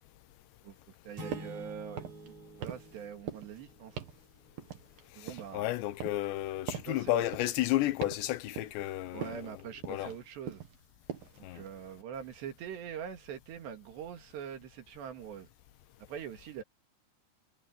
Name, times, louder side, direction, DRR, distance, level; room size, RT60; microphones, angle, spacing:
voice 1, 0.6-4.0 5.2-5.7 6.7-7.3 9.1-10.6 11.4-15.5 16.1-16.6, right 8 dB, 80° right, 4.5 m, -43 dB
sound 1, 1.2-4.0, equal, 35° right, 5.4 m, -47 dB
sound 2, 1.3-1.6 1.9-2.3 2.6-3.0 3.3-3.6 4.0-4.2 4.6-5.6 6.0-6.3 6.7-6.9 7.3-7.6 8.0-8.3 8.6-8.9 9.2-9.5 9.8-10.2 10.5-10.8 11.1-11.4, right 9 dB, 60° right, 3.6 m, -42 dB
voice 2, 5.2-9.4 9.9-10.1 11.4-11.6, left 16 dB, 85° left, 3.2 m, -32 dB
omnidirectional pair, 4.9 m